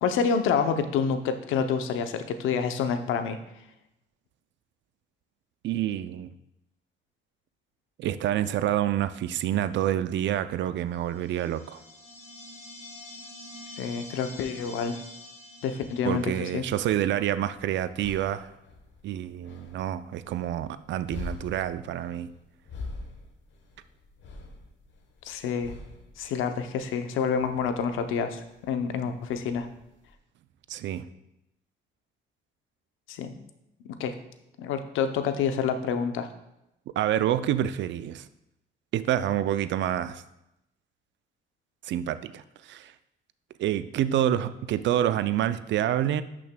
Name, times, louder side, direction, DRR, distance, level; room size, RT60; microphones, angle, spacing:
voice 1, 0.0-3.4 13.8-15.0 15.6-16.6 25.2-25.7 26.2-29.7 33.1-33.3 34.0-34.1 34.6-36.3, left 6 dB, 90° left, 8 dB, 0.6 m, -28 dB
voice 2, 5.6-6.3 8.0-11.8 16.0-18.5 19.0-22.3 30.7-31.1 37.0-38.3 38.9-40.2 41.8-42.9 43.6-46.2, right 11 dB, 65° right, 14 dB, 0.4 m, -27 dB
sound 1, 11.1-16.5, left 1 dB, 30° left, 2.3 m, -46 dB
sound 2, 17.1-30.1, left 2 dB, 70° left, 1.1 m, -45 dB
10.5 x 5.9 x 2.2 m, 0.86 s
cardioid pair, 90°, 20 cm